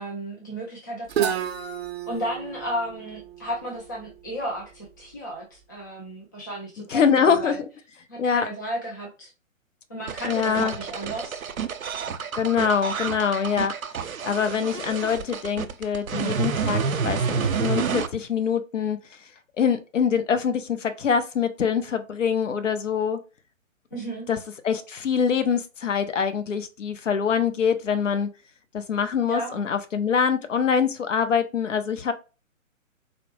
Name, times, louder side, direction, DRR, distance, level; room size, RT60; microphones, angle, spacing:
voice 1, 0.0-1.4 2.1-7.6 8.1-9.3 9.9-11.4 23.9-24.3 29.3-29.6, equal, 15° left, 0.4 m, -33 dB
Guitar, 1.1-4.9, right 10 dB, 50° right, 0.6 m, -31 dB
voice 2, 6.9-7.5 8.2-8.5 10.2-10.7 12.3-13.7 14.2-19.0 19.6-23.2 24.3-24.4 24.6-28.3 28.7-32.1, left 7 dB, 65° left, 0.8 m, -24 dB
sound 1, 10.1-18.1, right 6 dB, 90° right, 0.6 m, -29 dB
4.1 x 2.1 x 3.1 m
figure-of-eight pair, 130°, 40 cm